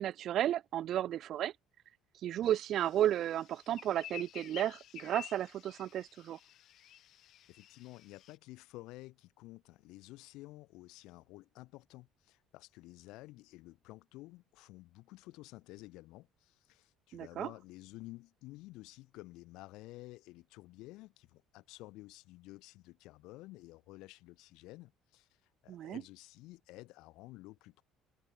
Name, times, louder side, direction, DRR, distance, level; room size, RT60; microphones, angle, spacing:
voice 1, 0.0-1.5 2.2-6.4 17.1-17.5 25.7-26.0, right 11 dB, 60° right, 0.3 m, -33 dB
sound 1, 2.4-8.4, left 12 dB, 60° left, 0.7 m, -51 dB
voice 2, 7.5-25.3 25.6-27.8, left 20 dB, 80° left, 1.2 m, -52 dB
cardioid pair, 100°, 0 cm